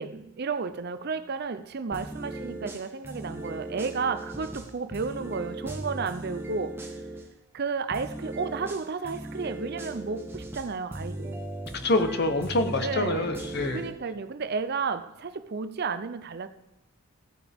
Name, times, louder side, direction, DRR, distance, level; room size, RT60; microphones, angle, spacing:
voice 1, 0.0-7.0 7.5-11.4 12.8-13.3 13.7-16.5, right 5 dB, 45° right, 0.5 m, -32 dB
sound 1, 1.9-7.3 7.9-13.9, right 1 dB, 10° right, 0.8 m, -38 dB
voice 2, 11.8-13.8, left 2 dB, 50° left, 0.9 m, -26 dB
15.5 x 8.6 x 3.5 m
head